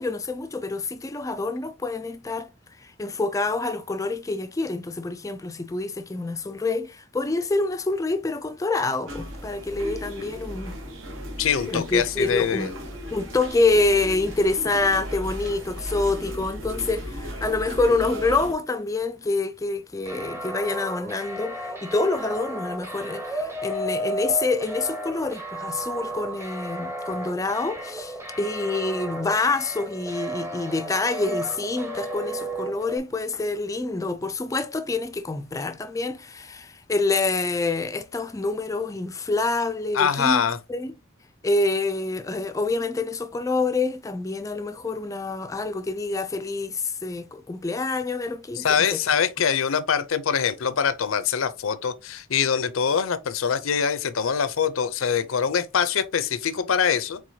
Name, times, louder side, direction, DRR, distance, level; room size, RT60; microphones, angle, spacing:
voice 1, 0.0-2.5 2.8-10.8 11.7-12.7 13.1-40.4 40.7-40.9 41.4-49.0, left 3 dB, 15° left, 0.3 m, -26 dB
sound 1, 9.1-18.5, equal, 70° right, 1.3 m, -36 dB
voice 2, 11.4-12.7 39.9-40.6 48.6-57.2, left 7 dB, 80° left, 0.6 m, -24 dB
sound 2, 20.1-33.0, right 1 dB, 15° right, 0.8 m, -33 dB
4.7 x 3.8 x 2.7 m
head